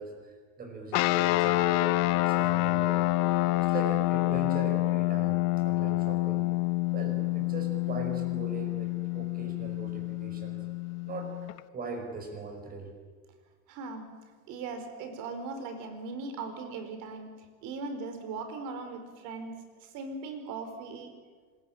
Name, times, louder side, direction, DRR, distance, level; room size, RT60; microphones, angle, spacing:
voice 1, 0.0-3.1 3.6-5.4 5.6-6.5 6.9-10.6 11.1-11.3 11.7-12.9, right 3 dB, 20° right, 5 dB, 5.3 m, -40 dB
sound 1, 0.9-11.6, left 19 dB, 40° left, 0.8 m, -27 dB
voice 2, 13.7-21.2, right 4 dB, 45° right, 8 dB, 4.6 m, -39 dB
25.5 x 21.5 x 9.0 m, 1.5 s
supercardioid pair, 165°, 44 cm